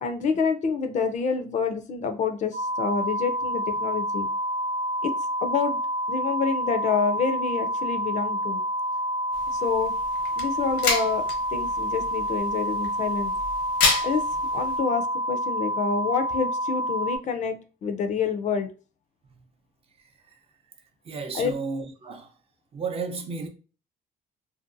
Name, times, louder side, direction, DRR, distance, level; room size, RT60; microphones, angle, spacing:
voice 1, 0.0-4.3 5.0-5.1 5.4-5.8 6.1-8.6 9.5-9.9 10.4-11.2 11.5-13.3 14.0-14.2 14.5-18.7 21.3-21.5, left 5 dB, 45° left, 0.4 m, -27 dB
sound 1, 2.5-17.2, equal, 65° right, 0.8 m, -28 dB
sound 2, 9.3-14.8, left 4 dB, 80° left, 0.8 m, -30 dB
voice 2, 21.0-22.3 22.7-23.5, right 4 dB, 35° right, 0.5 m, -33 dB
2.6 x 2.1 x 2.5 m
cardioid pair, 110°, 17 cm